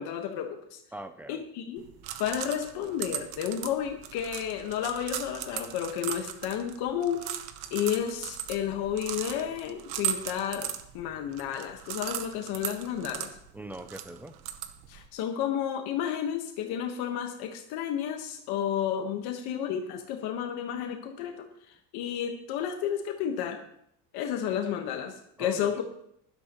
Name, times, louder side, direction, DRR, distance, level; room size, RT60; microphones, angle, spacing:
voice 1, 0.0-0.8 1.3-1.8 2.2-7.3 7.7-13.3 14.9-21.5 21.9-23.6 24.1-25.8, left 9 dB, 65° left, 4 dB, 1.3 m, -32 dB
voice 2, 0.9-1.4 13.5-14.4 25.4-25.8, right 1 dB, 5° right, 9 dB, 0.3 m, -41 dB
sound 1, 1.8-15.1, right 11 dB, 60° right, 1.0 m, -38 dB
16.0 x 12.0 x 3.0 m, 0.71 s
cardioid pair, 165°, 40 cm